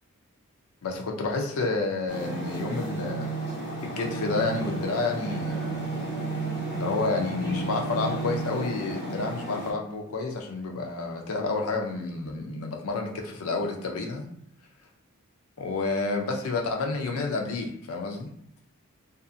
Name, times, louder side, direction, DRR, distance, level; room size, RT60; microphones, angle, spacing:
voice 1, 0.8-3.3 3.8-5.7 6.7-14.3 15.6-18.3, left 3 dB, 70° left, 2 dB, 0.5 m, -30 dB
sound 1, 2.1-9.7, right 3 dB, 50° left, 1.1 m, -32 dB
2.5 x 2.4 x 2.5 m, 0.71 s
head